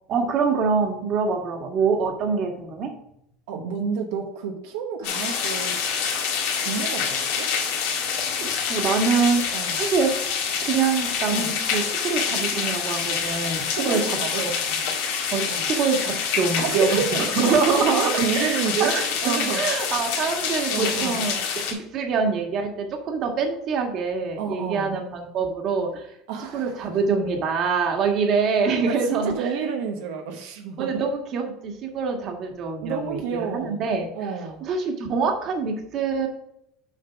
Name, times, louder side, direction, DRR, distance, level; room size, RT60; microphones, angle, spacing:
voice 1, 0.1-2.9 8.3-10.1 10.6-14.5 15.3-21.4 21.7-26.1 26.4-29.5 30.8-34.1 34.6-36.3, right 5 dB, 45° right, 3 dB, 1.6 m, -25 dB
voice 2, 3.5-5.8 6.6-7.5 9.5-9.8 11.3-11.5 13.6-14.4 15.5-15.6 16.6-19.6 20.7-21.2 24.4-25.0 26.3-26.8 28.9-30.9 32.8-33.8 34.1-34.6, right 6 dB, 85° right, 3 dB, 1.0 m, -29 dB
sound 1, 5.0-21.7, left 6 dB, 80° left, 1.8 m, -26 dB
6.6 x 5.2 x 4.7 m, 0.76 s
supercardioid pair, 130°, 0 cm